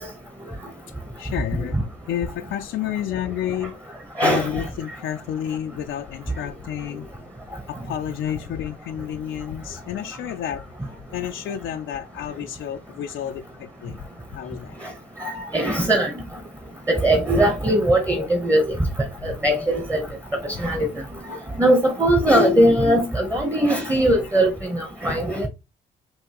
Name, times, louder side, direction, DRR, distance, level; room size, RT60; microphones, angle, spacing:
voice 1, 1.2-1.8 2.1-3.8 4.2-7.1 7.7-10.6 11.1-14.0 14.3-14.7 18.1-18.3 19.2-19.3, left 10 dB, 75° left, 0.5 m, -30 dB
voice 2, 4.2-4.5 15.2-16.1 16.9-18.8 19.2-20.0 20.4-20.9 21.6-25.5, right 1 dB, 15° right, 1.0 m, -20 dB
5.2 x 2.8 x 3.0 m
cardioid pair, 90°, 20 cm